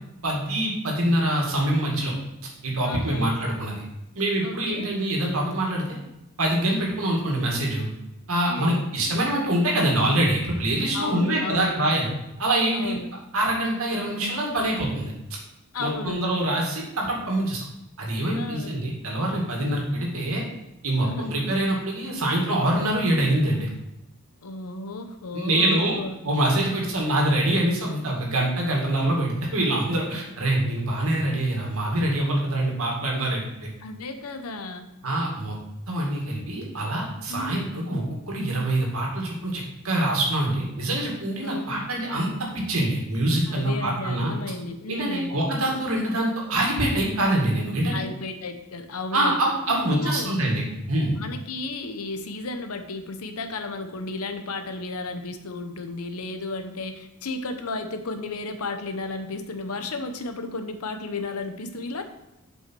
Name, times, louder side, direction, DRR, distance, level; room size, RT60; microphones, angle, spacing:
voice 1, 0.2-2.1 2.6-3.8 4.2-5.8 6.4-7.9 8.3-12.1 12.4-12.9 13.3-15.1 15.8-17.6 18.0-20.4 20.8-23.7 25.3-26.0 26.2-33.7 35.0-35.5 35.9-42.3 42.5-44.3 44.9-48.0 49.1-51.1, right 1 dB, 75° right, -1 dB, 2.3 m, -25 dB
voice 2, 2.8-3.3 4.4-4.9 8.5-8.9 10.9-11.8 12.7-13.1 15.7-16.3 18.3-18.8 21.0-21.3 24.4-26.2 33.8-34.9 37.3-37.7 41.4-41.8 43.5-45.3 47.9-49.3 49.7-50.4 51.2-62.0, left 3 dB, 85° left, 7 dB, 0.9 m, -33 dB
7.5 x 5.5 x 4.6 m, 0.91 s
head